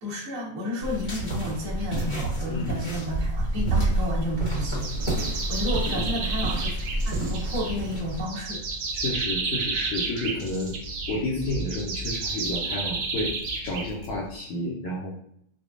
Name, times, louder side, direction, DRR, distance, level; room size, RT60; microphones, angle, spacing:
voice 1, 0.0-4.9 5.5-6.7 7.0-8.6, left 1 dB, 65° right, -5 dB, 0.9 m, -31 dB
sound 1, 0.8-8.2, right 2 dB, 30° left, 0.8 m, -28 dB
sound 2, 4.5-14.3, right 3 dB, 85° right, 1.1 m, -32 dB
voice 2, 5.9-6.2 8.9-10.7 11.1-13.3 13.6-15.2, left 1 dB, 75° left, -5 dB, 1.4 m, -31 dB
5.1 x 2.2 x 2.4 m, 0.72 s
omnidirectional pair, 3.3 m